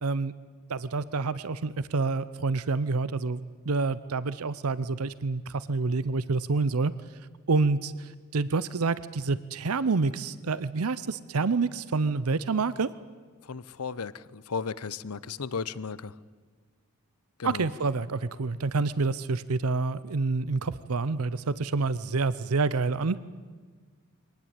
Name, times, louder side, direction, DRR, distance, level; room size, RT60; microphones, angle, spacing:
voice 1, 0.0-0.3 0.7-3.4 3.7-6.9 7.5-12.9 17.4-23.2, right 3 dB, 75° right, 17 dB, 0.7 m, -28 dB
voice 2, 13.4-16.1 17.4-17.7, left 5 dB, 80° left, 18 dB, 0.8 m, -35 dB
23.5 x 18.5 x 9.0 m, 1.5 s
head